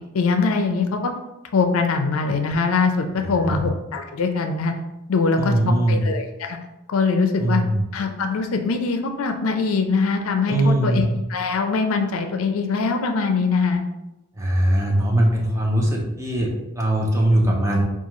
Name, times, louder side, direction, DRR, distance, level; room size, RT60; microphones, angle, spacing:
voice 1, 0.1-1.1 1.5-4.7 5.1-5.5 5.9-6.6 6.9-7.6 7.9-13.8, left 4 dB, 70° left, 5 dB, 0.4 m, -22 dB
voice 2, 3.2-3.7 5.4-6.0 7.4-7.8 10.5-11.1 14.4-17.8, right 1 dB, 15° right, -2 dB, 0.6 m, -21 dB
4.8 x 2.4 x 3.0 m, 0.97 s
head